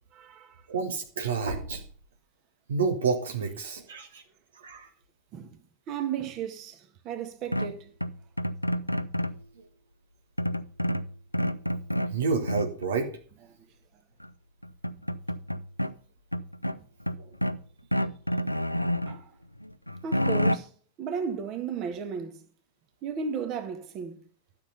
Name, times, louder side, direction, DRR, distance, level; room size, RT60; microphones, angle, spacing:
voice 1, 0.1-0.6 5.3-5.6 5.9-7.9 19.1-19.3 20.0-20.7 21.0-22.4 23.0-24.2, right 6 dB, 35° right, 1.8 m, -34 dB
voice 2, 0.7-1.8 2.7-4.2 4.6-4.9 12.1-13.1 17.2-17.3, right 5 dB, 65° right, 1.4 m, -29 dB
sound 1, 7.5-9.4 10.4-12.1 12.5-12.9 14.2-14.3 14.6-15.9 16.3-17.6 17.9-19.2 19.6-20.6, equal, 90° left, 0.5 m, -29 dB
12.5 x 7.1 x 5.4 m
figure-of-eight pair, 90°, 0 cm